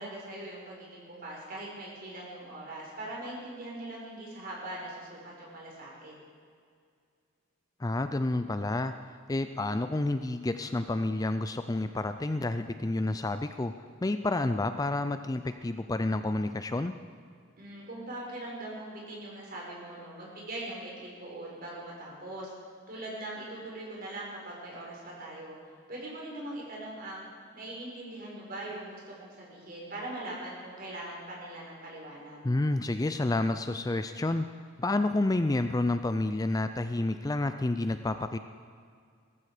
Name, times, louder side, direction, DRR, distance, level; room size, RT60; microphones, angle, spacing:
voice 1, 0.0-6.1 17.6-22.5 22.9-25.6 25.9-27.3 27.5-32.4, right 1 dB, 45° right, -4 dB, 5.2 m, -41 dB
voice 2, 7.8-13.7 14.0-17.0 32.4-34.5 34.8-38.4, left 2 dB, 20° left, 10 dB, 0.4 m, -29 dB
18.5 x 14.5 x 5.0 m, 2.2 s
head